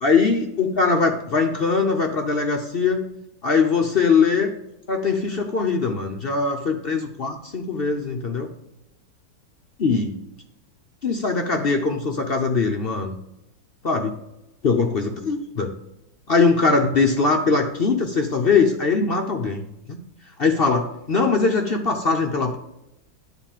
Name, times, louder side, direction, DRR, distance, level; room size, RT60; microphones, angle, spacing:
voice 1, 0.0-3.0 3.4-4.5 4.9-8.5 9.8-10.2 11.0-13.2 13.8-14.1 14.6-15.7 16.3-20.0 20.4-22.6, left 4 dB, 60° left, 3 dB, 0.6 m, -21 dB
10.5 x 4.0 x 7.3 m, 0.89 s
omnidirectional pair, 2.0 m